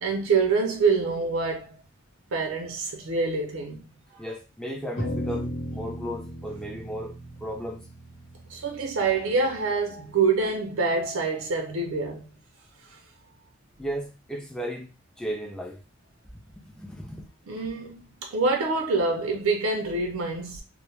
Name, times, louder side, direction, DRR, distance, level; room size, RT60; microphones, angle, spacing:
voice 1, 0.0-1.8 2.3-3.9 8.5-12.3 17.5-20.6, right 4 dB, 75° right, 0.5 m, -26 dB
voice 2, 4.2-7.9 13.8-15.8 16.6-17.3, equal, 5° left, 0.4 m, -35 dB
sound 1, 5.0-9.5, equal, 65° left, 0.9 m, -35 dB
2.1 x 2.0 x 3.1 m
head